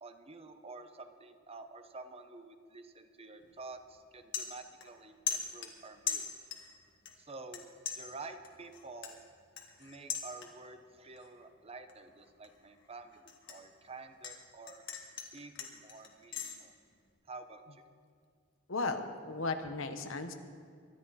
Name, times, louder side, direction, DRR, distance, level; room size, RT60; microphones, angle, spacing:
voice 1, 0.0-6.2 7.2-7.6 7.9-9.2 9.8-14.8 15.3-16.7 17.3-17.9, right 3 dB, 30° right, 8 dB, 0.8 m, -49 dB
sound 1, 3.4-3.6 4.0-5.0 5.3-6.8 7.1-7.6 7.9-10.8 11.2-11.5 11.9-14.4 14.7-16.5, left 7 dB, 60° left, 1.8 m, -40 dB
voice 2, 18.7-20.3, left 3 dB, 80° left, 7 dB, 1.2 m, -35 dB
24.0 x 11.0 x 4.2 m, 2.2 s
head